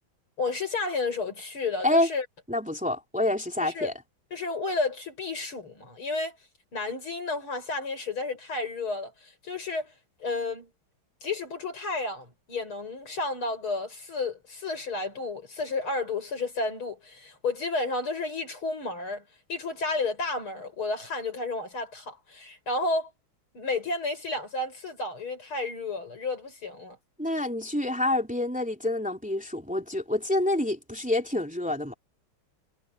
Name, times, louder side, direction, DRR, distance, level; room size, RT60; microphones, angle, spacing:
voice 1, 0.4-2.3 3.6-3.9 4.3-6.4 6.7-9.9 10.2-10.7 11.2-19.2 19.5-23.1 23.5-27.0, left 3 dB, 90° left, 7.3 m, -32 dB
voice 2, 2.5-3.9 27.2-31.9, left 1 dB, 5° right, 3.0 m, -27 dB
omnidirectional pair, 2.3 m